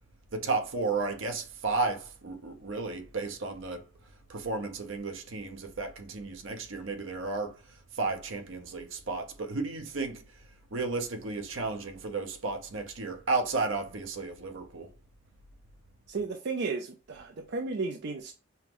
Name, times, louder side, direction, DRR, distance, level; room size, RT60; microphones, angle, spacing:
voice 1, 0.3-3.8 4.3-7.6 7.9-10.2 10.7-14.9, right 3 dB, 75° right, 0.8 m, -33 dB
voice 2, 16.1-18.3, right 4 dB, 55° right, 0.4 m, -34 dB
5.5 x 2.0 x 3.0 m
head